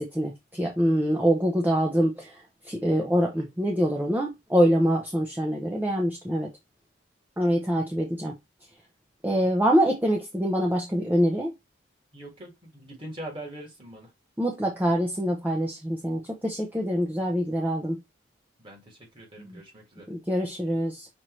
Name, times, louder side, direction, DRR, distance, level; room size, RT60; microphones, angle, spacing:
voice 1, 0.0-6.5 7.4-8.3 9.2-11.5 14.4-18.0 19.4-19.6 20.1-21.1, equal, 10° right, 0.6 m, -25 dB
voice 2, 12.1-14.1 18.6-20.1, right 1 dB, 25° right, 1.8 m, -42 dB
6.0 x 2.7 x 3.1 m
head